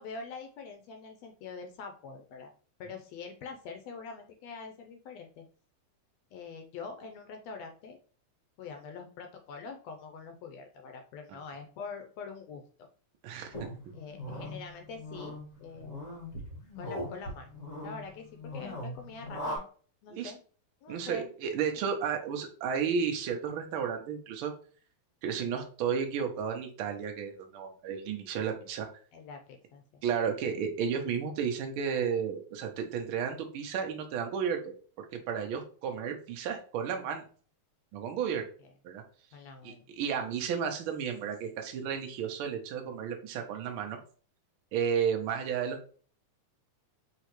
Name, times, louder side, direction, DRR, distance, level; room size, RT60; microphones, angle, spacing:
voice 1, 0.0-2.5 2.8-5.4 6.3-8.0 8.6-12.9 13.3-13.4 13.9-16.0 16.8-17.5 17.8-19.7 20.0-20.4 20.8-21.3 29.1-30.0 38.6-38.7 39.3-39.8, left 5 dB, 75° left, 5 dB, 1.6 m, -44 dB
voice 2, 13.2-13.5 20.1-20.3 20.9-24.5 25.2-28.9 30.0-37.2 37.9-38.5 38.8-39.0 39.6-44.0 44.7-45.9, right 7 dB, 80° right, 3 dB, 1.1 m, -33 dB
sound 1, 13.5-19.6, left 1 dB, 55° left, 0.9 m, -40 dB
5.7 x 3.1 x 3.0 m, 0.42 s
omnidirectional pair, 3.4 m